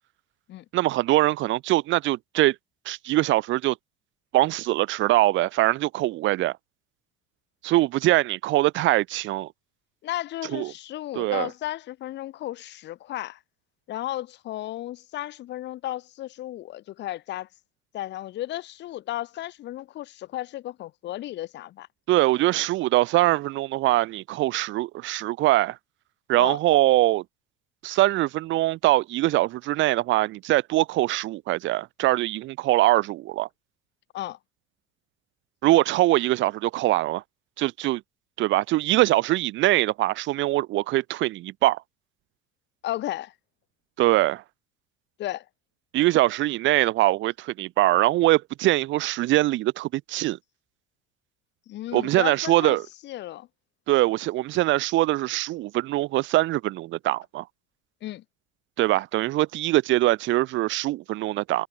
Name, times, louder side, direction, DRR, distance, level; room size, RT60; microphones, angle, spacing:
voice 1, 0.7-2.5 2.9-3.8 4.3-6.5 7.6-9.5 10.5-10.7 11.2-11.5 22.1-25.8 26.3-27.2 27.8-33.5 35.6-37.2 37.6-38.0 38.4-41.8 44.0-44.4 45.9-50.4 51.9-52.8 53.9-57.4 58.8-61.7, right 17 dB, 65° right, 2.6 m, -22 dB
voice 2, 10.0-13.4 13.9-17.5 17.9-21.9 26.4-26.6 34.1-34.4 42.8-43.3 45.2-45.5 51.7-52.8 53.0-53.5 58.0-58.2, left 14 dB, 55° left, 2.2 m, -34 dB
supercardioid pair, 110°, 21 cm